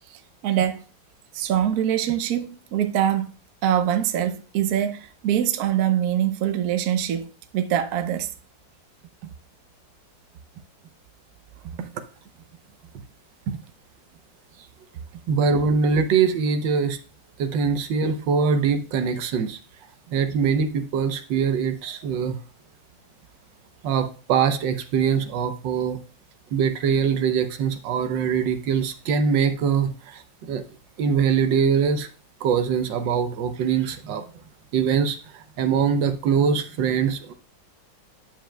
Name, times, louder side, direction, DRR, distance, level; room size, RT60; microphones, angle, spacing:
voice 1, 0.1-0.8 1.3-3.3 3.6-7.3 7.5-8.3, right 10 dB, 65° right, 1.1 m, -24 dB
voice 2, 15.3-17.0 17.4-19.6 20.1-22.4 23.8-26.0 26.5-30.6 31.0-32.1 32.4-34.2 34.7-37.3, right 6 dB, 80° right, 1.5 m, -23 dB
9.0 x 7.5 x 2.2 m
omnidirectional pair, 2.0 m